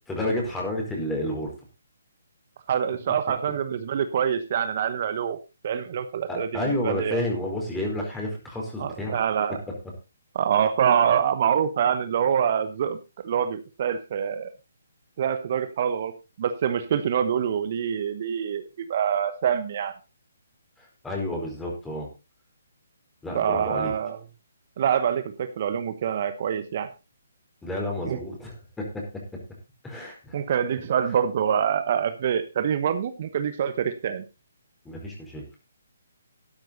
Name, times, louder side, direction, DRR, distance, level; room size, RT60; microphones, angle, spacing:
voice 1, 0.1-1.5 6.3-9.2 20.8-22.1 23.2-23.9 27.6-29.0 29.8-30.4 34.8-35.4, left 1 dB, 10° left, 0 dB, 4.7 m, -30 dB
voice 2, 2.7-7.2 8.8-9.6 10.3-13.0 13.2-14.5 15.2-18.6 18.9-20.0 23.3-24.2 24.8-26.9 28.1-28.2 30.3-34.2, right 8 dB, 45° right, 11 dB, 1.1 m, -25 dB
12.5 x 10.5 x 4.0 m, 0.28 s
hypercardioid pair, 145°, 0 cm